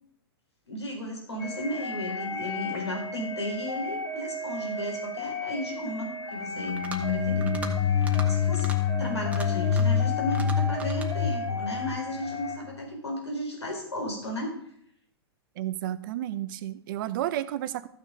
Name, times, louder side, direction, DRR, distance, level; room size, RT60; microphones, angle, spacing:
voice 1, 0.7-8.7 8.9-14.5, left 1 dB, 90° left, 1 dB, 4.2 m, -34 dB
sound 1, 1.4-12.6, left 1 dB, 65° left, 3.7 m, -35 dB
sound 2, 6.5-12.5, left 8 dB, 40° left, 2.7 m, -27 dB
sound 3, 6.6-7.1 7.4-7.7 8.0-8.3 8.5-8.8 9.2-10.0 10.3-11.1, right 3 dB, 10° right, 1.5 m, -40 dB
voice 2, 15.6-17.9, right 13 dB, 50° right, 14 dB, 0.8 m, -32 dB
14.0 x 6.5 x 5.1 m, 0.68 s
hypercardioid pair, 110°, 14 cm